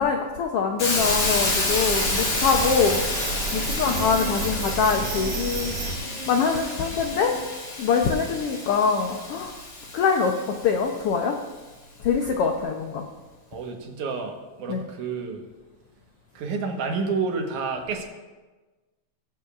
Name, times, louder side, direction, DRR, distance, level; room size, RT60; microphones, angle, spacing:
voice 1, 0.0-3.0 3.5-5.7 6.3-7.3 7.8-9.5 9.9-11.4 12.0-13.1 14.7-14.8, left 5 dB, 80° left, 3 dB, 1.3 m, -24 dB
Hiss, 0.8-10.7, left 2 dB, 45° left, 1.6 m, -29 dB
sound 1, 0.9-6.0, right 3 dB, 55° right, 2.2 m, -31 dB
sound 2, 3.8-7.6, right 3 dB, 20° right, 1.9 m, -39 dB
voice 2, 13.5-15.4 16.3-18.0, right 4 dB, 90° right, 2 dB, 2.6 m, -30 dB
19.0 x 7.5 x 2.4 m, 1.2 s
omnidirectional pair, 3.4 m